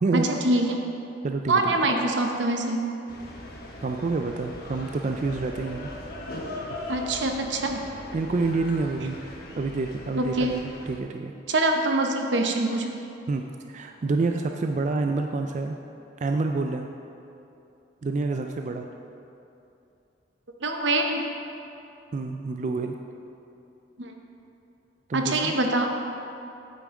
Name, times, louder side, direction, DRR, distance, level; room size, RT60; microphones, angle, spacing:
voice 1, 0.1-0.8 1.5-2.8 6.9-7.8 10.2-10.6 11.5-12.9 20.6-21.2 24.0-24.1 25.1-25.9, right 2 dB, 85° right, 3 dB, 0.9 m, -24 dB
voice 2, 1.2-1.9 3.8-5.9 8.1-9.2 9.6-11.3 13.3-13.4 13.7-15.8 16.2-16.9 18.0-18.9 22.1-23.0 25.1-25.5, right 3 dB, 45° right, 4 dB, 0.4 m, -28 dB
sound 1, 3.1-11.0, left 1 dB, 55° left, 1.2 m, -39 dB
9.2 x 8.4 x 3.7 m, 2.7 s
head